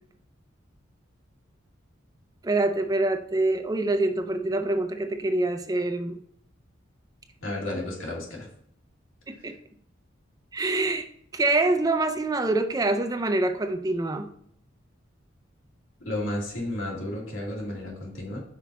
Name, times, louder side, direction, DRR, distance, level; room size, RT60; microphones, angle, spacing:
voice 1, 2.4-6.2 9.3-9.5 10.5-11.1 11.3-14.3, right 2 dB, 20° right, 7 dB, 0.5 m, -25 dB
voice 2, 7.4-8.5 16.0-18.4, left 1 dB, 85° left, -3 dB, 2.5 m, -32 dB
5.8 x 4.7 x 4.2 m, 0.65 s
head